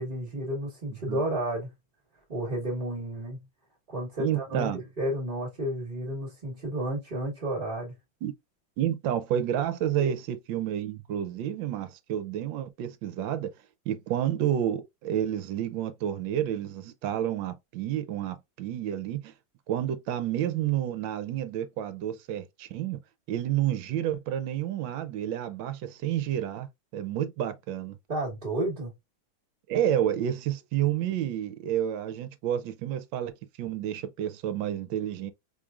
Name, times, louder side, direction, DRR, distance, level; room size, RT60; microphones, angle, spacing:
voice 1, 0.0-1.7 2.3-3.4 3.9-7.9 10.0-10.1 28.1-28.9, right 1 dB, 30° right, 1.4 m, -32 dB
voice 2, 4.2-4.8 8.2-8.3 8.8-13.5 13.9-19.3 19.7-23.0 23.3-26.7 26.9-28.0 29.7-33.3 33.6-35.3, right 11 dB, 75° right, 1.3 m, -30 dB
5.1 x 3.1 x 2.4 m
omnidirectional pair, 2.1 m